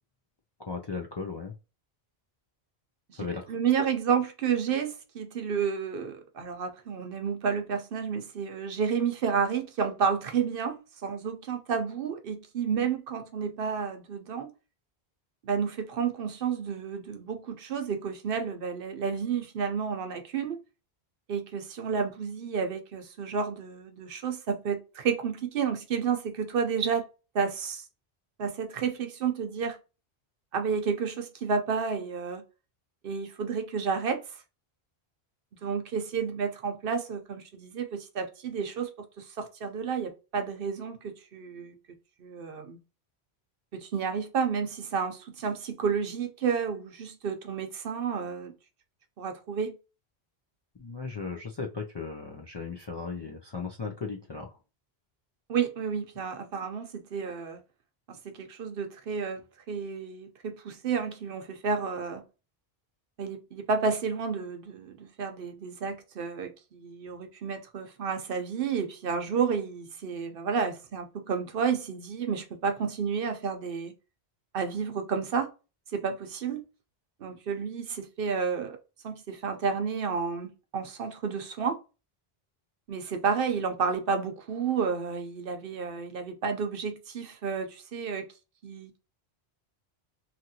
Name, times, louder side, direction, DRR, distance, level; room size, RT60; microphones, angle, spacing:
voice 1, 0.6-1.5 3.1-3.9 50.8-54.6, left 4 dB, 45° left, 0.3 m, -37 dB
voice 2, 3.2-14.5 15.4-20.6 21.3-27.1 27.3-27.9 28.4-29.8 30.5-32.4 33.0-34.4 35.6-41.8 42.2-42.8 43.7-48.5 49.2-49.8 55.5-57.6 58.1-59.4 59.7-62.2 63.2-73.9 74.5-75.5 75.9-76.7 77.2-78.8 79.0-81.8 82.9-88.3 88.6-89.0, right 6 dB, 65° right, 0.8 m, -31 dB
2.9 x 2.5 x 2.7 m
omnidirectional pair, 1.1 m